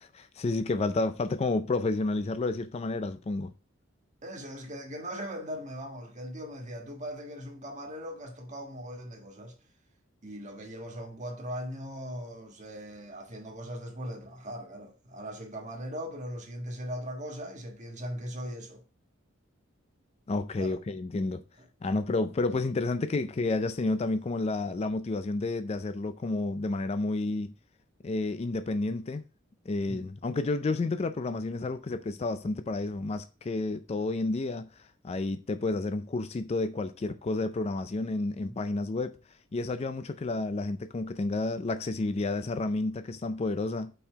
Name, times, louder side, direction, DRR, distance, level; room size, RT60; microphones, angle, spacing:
voice 1, 0.2-3.5 20.3-21.4 21.8-27.5 28.0-29.2 29.7-34.7 35.0-39.2 39.5-43.9, left 2 dB, 30° left, 0.4 m, -30 dB
voice 2, 4.2-9.5 10.2-18.8 20.6-20.8 21.6-21.7 29.9-30.1, equal, 35° right, 1.4 m, -39 dB
5.5 x 4.5 x 4.6 m
head